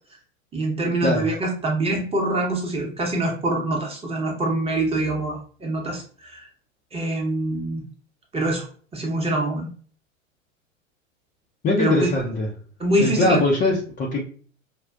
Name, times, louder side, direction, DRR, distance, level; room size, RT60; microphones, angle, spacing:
voice 1, 0.5-6.5 6.9-7.9 8.3-8.7 8.9-9.7 11.8-12.1 12.8-13.4, right 2 dB, 15° right, 0 dB, 0.9 m, -24 dB
voice 2, 11.6-12.5 13.0-14.2, left 2 dB, 20° left, -2 dB, 0.6 m, -21 dB
5.0 x 2.4 x 2.2 m, 0.43 s
figure-of-eight pair, 90°, 40 cm